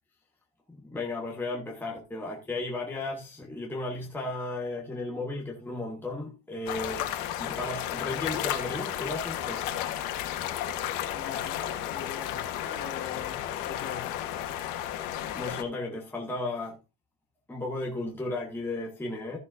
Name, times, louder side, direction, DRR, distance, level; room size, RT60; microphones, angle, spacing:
voice 1, 0.7-7.1 7.4-9.7 15.0-16.8 17.5-19.4, left 2 dB, 5° left, 1.4 m, -35 dB
sound 1, 6.7-15.6, left 11 dB, 75° left, 1.5 m, -33 dB
voice 2, 11.1-14.2, left 7 dB, 35° left, 2.6 m, -43 dB
14.5 x 6.9 x 2.6 m
cardioid pair, 155°, 33 cm